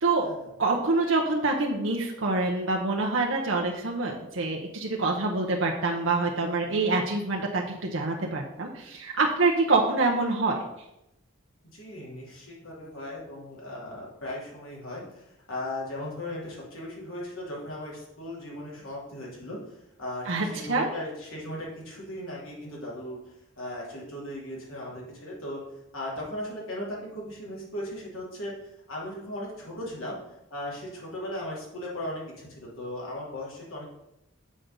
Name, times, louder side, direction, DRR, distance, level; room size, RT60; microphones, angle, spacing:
voice 1, 0.6-10.6 20.3-20.9, right 3 dB, 70° right, 0 dB, 0.9 m, -26 dB
voice 2, 11.7-25.6 25.9-30.2 30.5-33.8, left 1 dB, 85° left, -4 dB, 3.1 m, -37 dB
7.5 x 3.8 x 6.7 m, 0.86 s
head